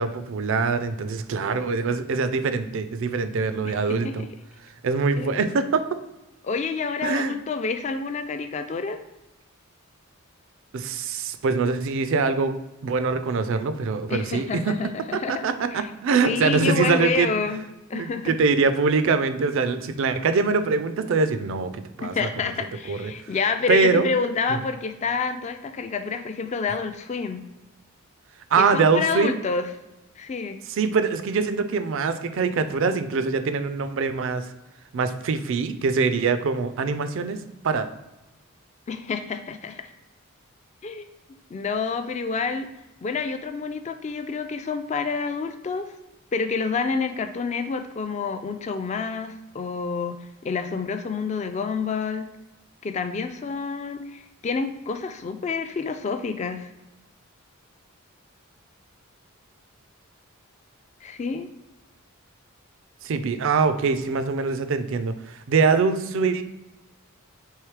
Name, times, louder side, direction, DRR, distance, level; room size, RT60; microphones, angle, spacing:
voice 1, 0.0-4.3 4.8-5.8 7.0-7.4 10.7-12.6 12.8-14.7 15.1-17.5 17.9-22.5 22.9-23.1 23.7-24.1 24.5-24.6 28.5-29.3 30.7-34.5 34.9-37.4 37.6-37.9 63.0-66.4, right 4 dB, 60° right, 11 dB, 0.4 m, -23 dB
voice 2, 3.6-4.3 5.2-5.4 6.4-9.0 14.1-15.9 16.2-17.6 17.9-18.3 22.0-27.4 28.6-29.7 30.2-30.6 38.9-39.8 40.8-41.1 41.5-42.7 43.0-45.9 46.3-52.3 52.8-56.7 61.0-61.5, left 5 dB, 30° left, 7 dB, 0.3 m, -28 dB
4.7 x 3.1 x 3.2 m, 0.98 s
head